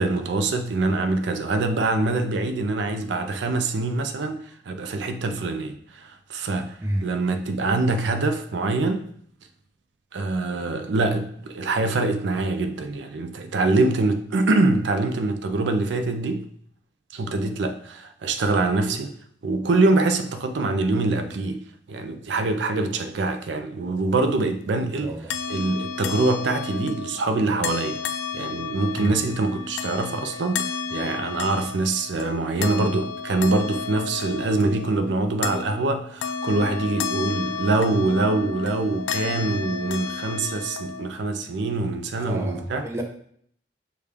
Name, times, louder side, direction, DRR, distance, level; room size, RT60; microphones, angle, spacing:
voice 1, 0.0-6.7 7.0-9.1 10.1-16.4 17.1-19.2 19.4-21.6 21.9-25.1 25.5-28.0 28.3-42.9, right 2 dB, 80° right, 0.4 m, -24 dB
voice 2, 25.0-25.3 29.0-29.2 42.2-43.0, right 1 dB, 15° right, 0.5 m, -29 dB
sound 1, 25.3-41.1, left 6 dB, 85° left, 0.3 m, -32 dB
6.6 x 2.3 x 3.4 m
head